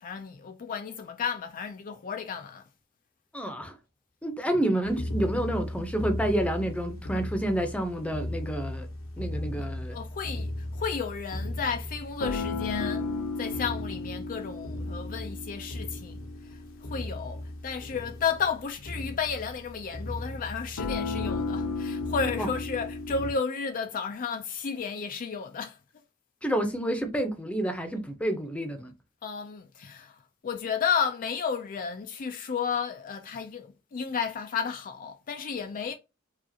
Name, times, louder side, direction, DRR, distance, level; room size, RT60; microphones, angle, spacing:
voice 1, 0.0-2.6 4.5-4.6 9.6-13.1 13.4-25.8 29.2-35.9, left 6 dB, 40° left, 0.4 m, -33 dB
voice 2, 3.3-3.7 4.2-8.9 9.2-10.0 22.4-22.5 26.4-28.9, right 1 dB, 5° left, 0.7 m, -29 dB
sound 1, 4.8-23.3, left 2 dB, 75° left, 0.9 m, -35 dB
4.8 x 2.4 x 2.8 m
head